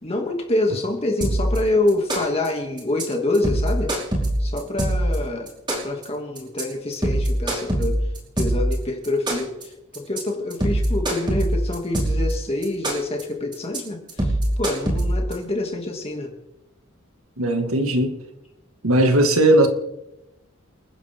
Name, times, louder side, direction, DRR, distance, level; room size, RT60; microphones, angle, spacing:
voice 1, 0.0-3.9 4.4-5.5 5.8-8.0 8.4-16.3, left 2 dB, 30° left, 2 dB, 2.5 m, -26 dB
sound 1, 1.2-1.6 1.9-2.5 2.8-3.0 3.3-5.2 5.5-6.0 6.4-6.6 6.9-8.7 9.0-9.6 9.9-10.2 10.5-12.3 12.6-13.2 13.5-13.8 14.1-15.3, right 1 dB, 20° right, 5.2 m, -22 dB
voice 2, 17.4-18.2 18.8-19.7, right 1 dB, 80° right, 5 dB, 2.1 m, -17 dB
29.0 x 10.5 x 3.7 m, 0.93 s
head